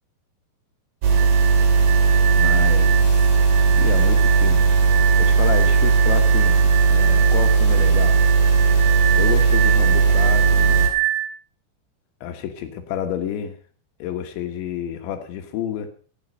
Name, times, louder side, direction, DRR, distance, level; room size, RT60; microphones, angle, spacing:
sound 1, 1.0-10.9, right 5 dB, 55° right, 3.5 m, -17 dB
sound 2, 1.1-11.3, right 13 dB, 85° right, 3.1 m, -27 dB
voice 1, 2.4-3.3 3.8-4.7 5.2-8.2 9.2-10.9 12.2-13.5 14.0-15.9, left 9 dB, 75° left, 6 dB, 3.5 m, -30 dB
16.0 x 9.6 x 5.3 m, 0.42 s
omnidirectional pair, 5.3 m